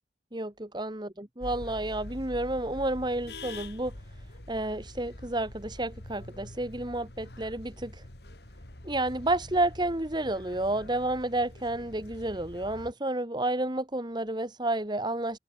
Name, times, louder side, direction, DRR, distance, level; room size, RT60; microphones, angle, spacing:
voice 1, 0.3-3.9 4.5-8.1 8.8-15.4, right 2 dB, 25° right, 2.0 m, -30 dB
sound 1, 1.4-12.9, left 1 dB, 65° left, 3.2 m, -45 dB
head